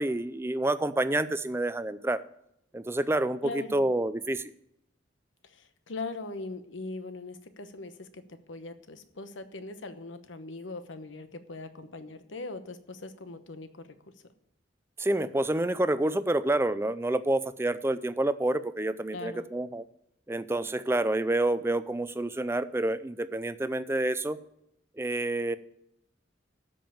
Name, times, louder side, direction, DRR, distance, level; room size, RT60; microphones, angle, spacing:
voice 1, 0.0-2.2 2.7-4.4 15.0-19.8 20.3-24.4 25.0-25.6, right 1 dB, 15° right, 14 dB, 0.4 m, -28 dB
voice 2, 3.4-3.8 5.4-14.3 19.1-19.5, left 3 dB, 80° left, 10 dB, 1.0 m, -41 dB
13.0 x 5.5 x 7.1 m, 0.78 s
head